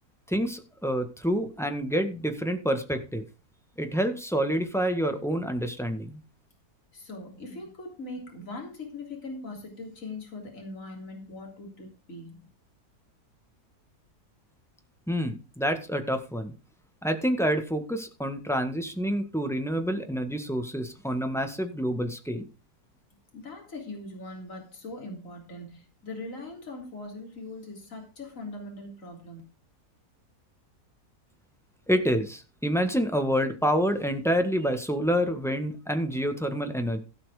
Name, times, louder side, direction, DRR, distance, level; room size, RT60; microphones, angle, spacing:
voice 1, 0.3-3.2 3.8-6.2 15.1-16.5 17.0-22.5 31.9-37.0, equal, ahead, 6 dB, 1.5 m, -28 dB
voice 2, 6.9-12.4 23.3-29.4, left 2 dB, 55° left, 1 dB, 3.8 m, -41 dB
16.5 x 6.0 x 5.0 m, 0.33 s
omnidirectional pair, 1.6 m